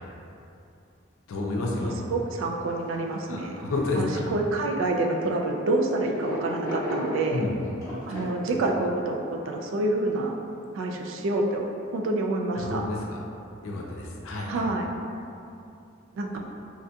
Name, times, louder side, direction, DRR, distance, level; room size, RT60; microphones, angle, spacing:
voice 1, 1.3-2.0 3.3-4.2 7.3-7.5 12.6-13.2 13.6-14.6, left 2 dB, 90° left, -2 dB, 0.5 m, -30 dB
voice 2, 2.1-3.6 3.9-7.4 8.1-9.2 9.4-10.4 10.7-11.7 11.9-12.9 14.5-14.9 16.1-16.4, right 2 dB, 70° right, 2 dB, 0.3 m, -27 dB
sound 1, 2.4-2.5 3.3-4.0 4.9-5.2 6.0-8.2, equal, 15° left, 1.0 m, -34 dB
3.5 x 2.7 x 2.2 m, 2.6 s
head